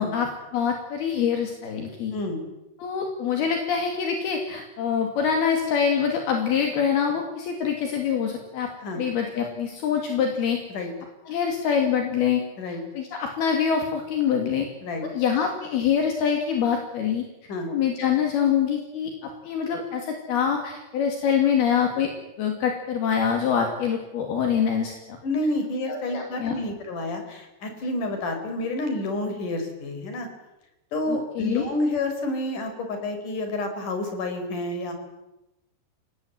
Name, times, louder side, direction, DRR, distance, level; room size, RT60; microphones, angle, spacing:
voice 1, 0.0-2.1 2.8-10.6 11.3-14.7 15.0-17.3 17.7-22.1 22.4-25.2 25.9-26.5 31.1-31.7, left 7 dB, 70° left, 3 dB, 4.3 m, -25 dB
voice 2, 25.2-30.3 30.9-34.9, left 2 dB, 50° left, 6 dB, 5.8 m, -29 dB
28.0 x 18.0 x 9.4 m, 0.95 s
omnidirectional pair, 4.7 m